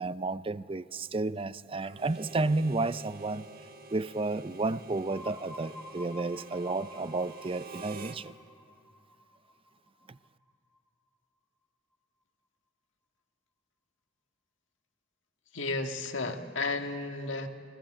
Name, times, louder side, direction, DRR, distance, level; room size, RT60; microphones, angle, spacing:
voice 1, 0.0-3.5 3.9-8.3 10.1-10.2, right 3 dB, 30° right, 15 dB, 0.5 m, -32 dB
Harmonica, 1.9-8.2, right 3 dB, 50° right, 1.4 m, -48 dB
sound 1, 5.1-10.8, left 1 dB, 5° left, 2.4 m, -50 dB
voice 2, 15.5-17.5, left 3 dB, 80° left, 4 dB, 1.8 m, -33 dB
27.5 x 21.5 x 7.7 m, 2.4 s
head